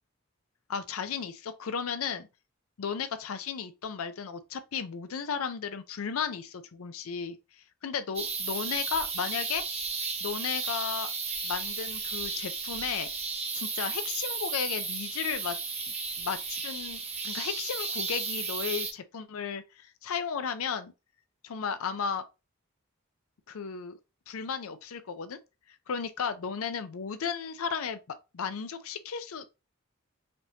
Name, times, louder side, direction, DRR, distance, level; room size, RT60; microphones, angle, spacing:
voice 1, 0.7-2.3 2.8-7.4 7.8-9.6 10.2-11.1 11.4-13.1 13.5-15.6 16.2-20.9 21.4-22.2 23.5-24.0 24.3-25.4 25.9-28.0 28.3-29.5, left 6 dB, 90° left, 0.5 m, -34 dB
sound 1, 8.1-18.9, right 4 dB, 30° right, 1.0 m, -34 dB
5.2 x 2.7 x 2.8 m
head